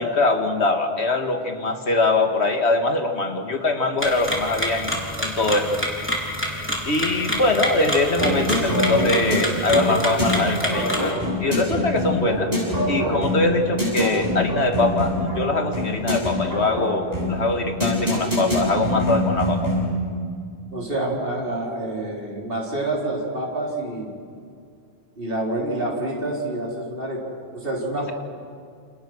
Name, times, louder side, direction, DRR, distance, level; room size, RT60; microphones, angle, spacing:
voice 1, 0.0-5.8 6.9-12.5 12.9-19.7, left 2 dB, 75° left, 5 dB, 2.4 m, -23 dB
sound 1, 4.0-11.1, equal, 10° left, 3.9 m, -28 dB
sound 2, 8.2-20.0, left 1 dB, 35° right, 7.6 m, -24 dB
voice 2, 20.7-24.1 25.2-28.1, right 1 dB, 55° right, -2 dB, 4.2 m, -27 dB
29.0 x 28.5 x 6.4 m, 2.3 s
omnidirectional pair, 1.1 m